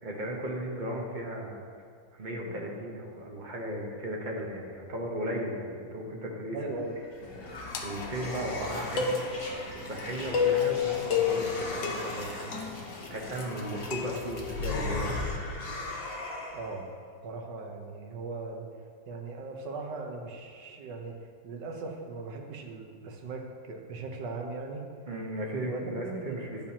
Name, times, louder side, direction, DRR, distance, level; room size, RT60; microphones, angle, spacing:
voice 1, 0.0-1.6 2.1-6.7 7.8-9.2 9.7-12.7 13.1-15.4 25.1-26.7, right 1 dB, 35° right, -1 dB, 0.8 m, -36 dB
voice 2, 2.3-2.6 6.5-6.9 16.5-16.9 17.2-18.7 19.1-24.9 25.7-26.3, right 3 dB, 65° right, 3 dB, 1.4 m, -39 dB
sound 1, 6.8-16.8, left 2 dB, 40° left, 0.9 m, -38 dB
sound 2, 7.2-14.4, left 7 dB, 70° left, 1.5 m, -32 dB
10.5 x 8.7 x 2.8 m, 2.2 s
omnidirectional pair, 2.1 m